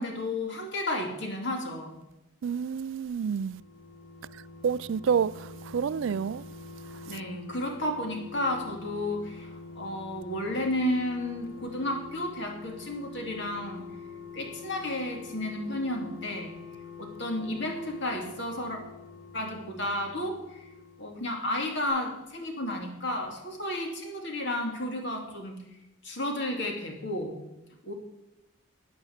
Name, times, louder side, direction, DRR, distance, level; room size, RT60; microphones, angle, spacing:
voice 1, 0.0-2.0 7.1-13.9 14.3-16.5 17.0-18.8 19.3-20.7 21.0-25.6 26.0-27.4 27.8-27.9, left 1 dB, 55° left, 2.6 m, -32 dB
voice 2, 2.4-3.6 4.6-6.4, right 6 dB, 60° right, 0.3 m, -28 dB
sound 1, 3.2-21.6 21.8-21.9, left 5 dB, 90° left, 2.6 m, -45 dB
9.8 x 9.5 x 8.0 m
head